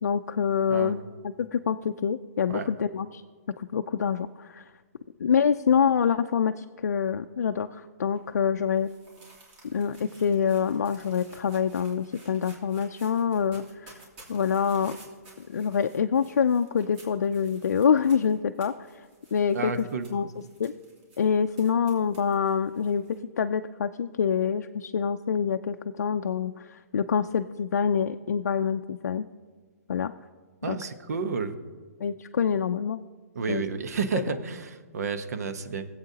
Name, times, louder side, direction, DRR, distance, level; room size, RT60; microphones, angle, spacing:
voice 1, 0.0-1.0 1.4-3.2 3.6-4.6 5.2-8.9 9.7-14.0 14.3-15.0 15.4-18.7 19.3-19.8 20.1-20.3 20.6-20.7 21.2-23.0 23.4-29.2 29.9-30.1 30.6-30.8 32.0-33.0 33.5-33.6 34.1-34.3, left 7 dB, 90° left, 7 dB, 0.4 m, -26 dB
sound 1, 8.1-23.2, right 2 dB, 35° right, 2.9 m, -54 dB
voice 2, 19.5-20.1 30.6-31.5 33.3-35.9, right 5 dB, 75° right, 9 dB, 1.0 m, -31 dB
18.5 x 7.9 x 2.8 m, 1.5 s
hypercardioid pair, 150°, 9 cm